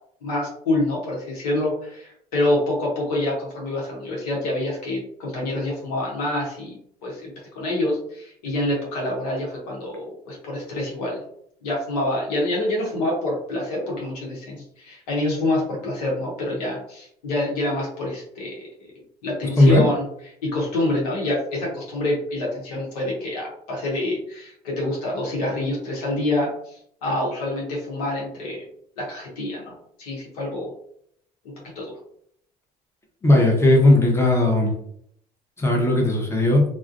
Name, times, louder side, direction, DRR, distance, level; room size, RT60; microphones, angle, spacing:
voice 1, 0.2-11.2 11.6-18.9 19.2-20.0 20.4-28.6 29.0-30.7 31.7-32.0, left 1 dB, 90° left, -3 dB, 0.8 m, -26 dB
voice 2, 33.2-34.7 35.6-36.6, left 1 dB, 15° left, 0 dB, 0.8 m, -17 dB
2.3 x 2.1 x 2.5 m, 0.69 s
hypercardioid pair, 65°, 19 cm